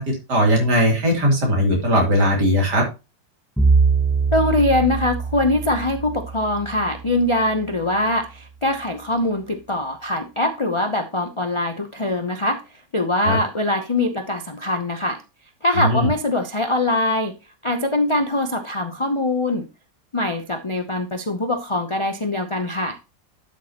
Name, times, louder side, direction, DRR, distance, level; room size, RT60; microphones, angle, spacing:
voice 1, 0.0-2.9 13.2-13.4 15.8-16.1, equal, 65° right, 3.7 m, -19 dB
Bowed string instrument, 3.6-7.8, right 4 dB, ahead, 0.7 m, -23 dB
voice 2, 4.3-12.6 12.9-15.2 15.6-17.3 17.6-19.7 20.1-23.0, left 1 dB, 50° left, 0.3 m, -22 dB
12.0 x 6.5 x 2.9 m
omnidirectional pair, 1.9 m